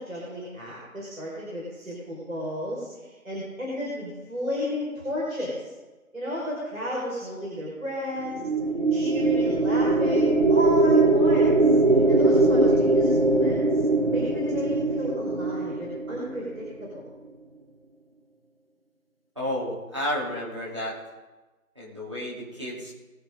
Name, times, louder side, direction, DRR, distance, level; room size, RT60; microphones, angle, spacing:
voice 1, 0.0-5.7 6.1-8.3 8.9-11.6 11.9-13.8 14.1-17.0, left 1 dB, 70° right, -5 dB, 5.2 m, -33 dB
sound 1, 8.2-16.7, right 2 dB, 45° right, 1.3 m, -21 dB
voice 2, 19.3-21.0 21.7-22.9, left 1 dB, 20° right, -7 dB, 3.3 m, -31 dB
22.5 x 8.4 x 3.9 m, 1.2 s
figure-of-eight pair, 180°, 42 cm